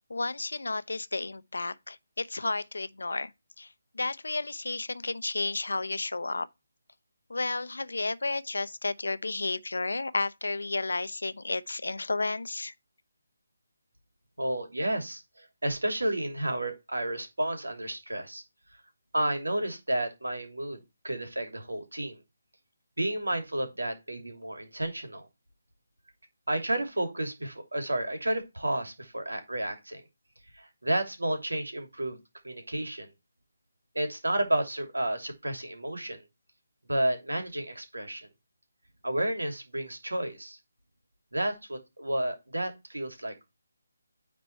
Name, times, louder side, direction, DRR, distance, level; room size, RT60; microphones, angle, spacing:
voice 1, 0.1-3.3 3.6-6.5 7.3-12.7, left 3 dB, 75° left, 0.8 m, -32 dB
voice 2, 14.4-18.4 19.1-22.2 23.0-25.3 26.5-30.0 30.5-32.2 32.4-33.1 33.9-36.2 36.9-38.3 39.0-40.6 41.3-43.5, right 1 dB, 90° right, 2.9 m, -31 dB
9.8 x 4.3 x 4.5 m
figure-of-eight pair, 155°, 0 cm